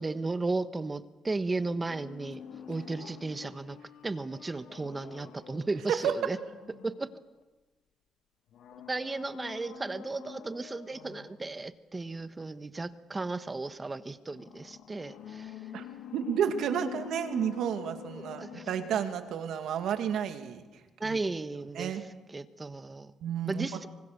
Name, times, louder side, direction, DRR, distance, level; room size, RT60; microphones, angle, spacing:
voice 1, 0.0-2.4 2.7-3.8 4.0-6.4 6.8-7.1 8.9-15.7 18.4-18.7 21.0-22.0 22.3-23.1 23.4-23.9, right 3 dB, 25° right, 12 dB, 1.2 m, -35 dB
sound 1, 1.7-7.4 8.5-11.5 14.3-19.5 19.8-19.9, left 9 dB, 75° left, 1.7 m, -47 dB
voice 2, 16.1-20.6 21.0-21.2 21.8-22.0 23.2-23.9, right 8 dB, 75° right, 7 dB, 2.4 m, -31 dB
25.5 x 24.5 x 6.8 m, 1.2 s
cardioid pair, 90°, 0 cm